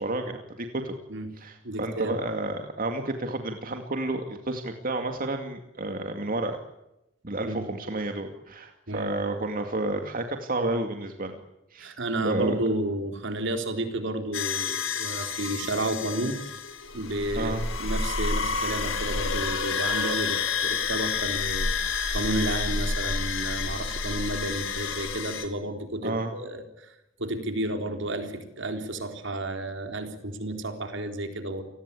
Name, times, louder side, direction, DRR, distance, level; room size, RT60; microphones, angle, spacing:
voice 1, 0.0-1.0 1.4-6.6 7.2-11.4 11.7-11.9 12.2-12.6 17.4-17.6 26.0-26.3, right 2 dB, 45° right, 5 dB, 2.3 m, -31 dB
voice 2, 1.6-2.2 7.4-7.6 8.9-9.1 11.8-16.4 16.9-26.9 27.2-31.6, right 1 dB, 65° right, 6 dB, 4.0 m, -31 dB
sound 1, 14.3-25.5, left 5 dB, 90° left, 4.0 m, -29 dB
29.0 x 20.0 x 8.5 m, 0.91 s
head